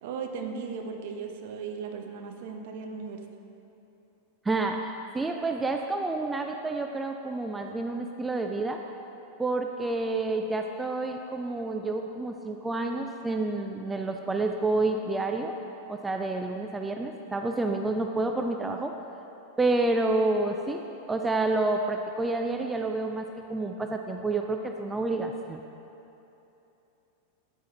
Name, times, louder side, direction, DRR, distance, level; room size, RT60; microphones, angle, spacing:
voice 1, 0.0-3.2, right 5 dB, 50° right, 4 dB, 0.8 m, -37 dB
voice 2, 4.4-4.9 5.1-8.8 9.4-15.5 15.9-18.9 19.6-20.8 21.1-25.6, right 2 dB, 10° right, 4 dB, 0.4 m, -29 dB
9.9 x 9.3 x 3.0 m, 2.9 s
figure-of-eight pair, 90°, 0 cm